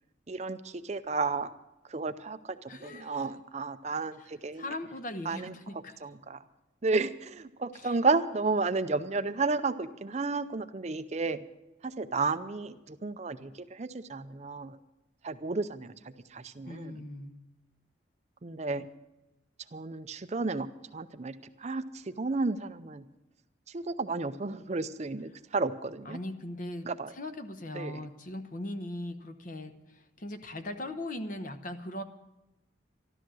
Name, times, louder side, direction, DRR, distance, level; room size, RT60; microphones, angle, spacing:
voice 1, 0.3-1.5 1.9-4.7 5.3-5.5 6.0-6.4 6.8-11.4 11.8-14.8 15.2-15.9 16.3-16.9 18.4-18.9 19.7-20.7 20.9-23.0 23.7-26.2 26.8-27.1 27.7-28.0, right 3 dB, 35° right, 11 dB, 0.5 m, -32 dB
voice 2, 2.7-3.4 4.2-6.0 7.7-8.0 16.6-17.4 26.0-32.0, left 1 dB, 45° left, 8 dB, 1.0 m, -40 dB
13.0 x 12.5 x 6.3 m, 0.98 s
head